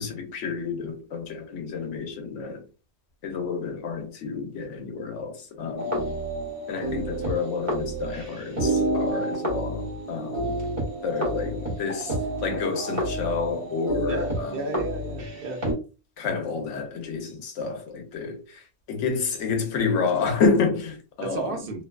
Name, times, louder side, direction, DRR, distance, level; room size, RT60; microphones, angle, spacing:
voice 1, 0.0-2.6 3.2-6.2 6.7-10.6 11.0-12.2 12.4-14.8 16.2-21.6, left 5 dB, 75° left, 1.0 m, -29 dB
sound 1, 5.8-15.7, right 1 dB, 40° right, 1.2 m, -29 dB
voice 2, 14.1-15.6 21.2-21.8, right 3 dB, 60° right, 0.6 m, -33 dB
2.6 x 2.2 x 2.2 m
omnidirectional pair, 1.3 m